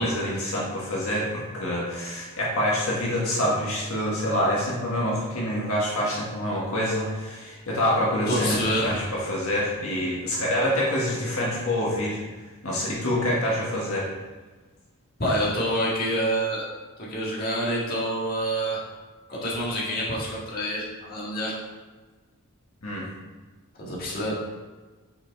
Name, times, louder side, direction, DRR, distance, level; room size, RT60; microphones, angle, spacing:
voice 1, 0.0-12.2 12.6-14.1 22.8-23.1, left 1 dB, 75° left, -5 dB, 1.6 m, -26 dB
voice 2, 8.3-9.0 15.2-16.6 17.1-18.8 19.3-21.5 23.8-24.3, equal, 45° left, -6 dB, 1.9 m, -27 dB
5.9 x 5.0 x 4.6 m, 1.3 s
head